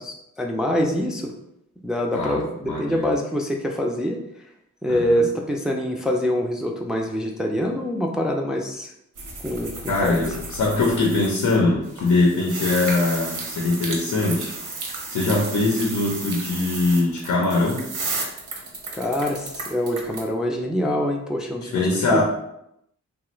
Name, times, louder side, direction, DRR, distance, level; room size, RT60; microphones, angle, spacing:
voice 1, 0.0-1.3 1.8-4.2 4.8-8.9 9.4-9.7 10.0-10.3 18.9-22.2, equal, ahead, 1 dB, 0.3 m, -25 dB
voice 2, 2.1-3.0 4.9-5.2 9.9-14.5 15.1-17.9 21.6-22.2, left 2 dB, 80° left, -1 dB, 0.7 m, -22 dB
sound 1, 9.2-11.6 11.8-20.2, right 3 dB, 80° right, 0.8 m, -33 dB
3.0 x 2.4 x 3.0 m, 0.79 s
wide cardioid pair, 85°, 31 cm